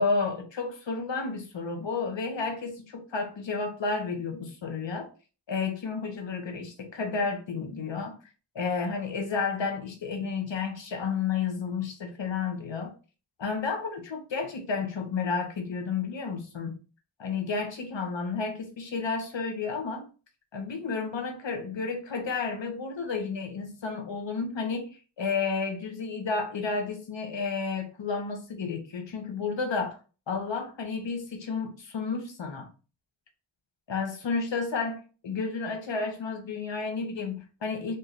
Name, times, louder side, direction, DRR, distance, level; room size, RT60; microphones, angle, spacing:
voice 1, 0.0-5.1 5.5-8.2 8.5-12.9 13.4-16.7 17.2-20.1 20.5-30.0 30.3-32.7 33.9-38.0, left 4 dB, 85° left, 4 dB, 1.0 m, -31 dB
4.4 x 2.7 x 3.2 m, 0.35 s
wide cardioid pair, 55°, 43 cm